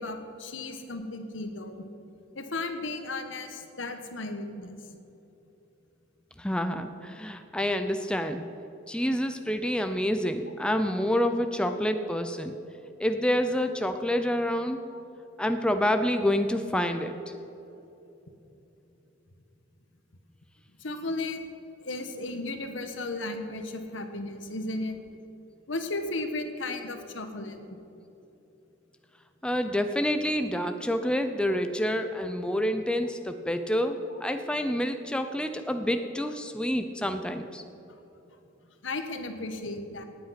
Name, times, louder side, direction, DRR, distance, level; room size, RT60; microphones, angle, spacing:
voice 1, 0.0-1.8 2.3-4.8 14.9-15.0 20.8-21.4 21.8-25.0 25.7-27.8 31.5-31.6 34.1-34.2 37.9-38.0 38.8-40.0, left 2 dB, 70° left, 6 dB, 1.4 m, -35 dB
voice 2, 6.4-8.4 8.9-12.5 13.0-14.8 15.4-17.1 29.4-37.6, equal, 5° left, 7 dB, 0.6 m, -28 dB
18.0 x 8.7 x 5.9 m, 3.0 s
head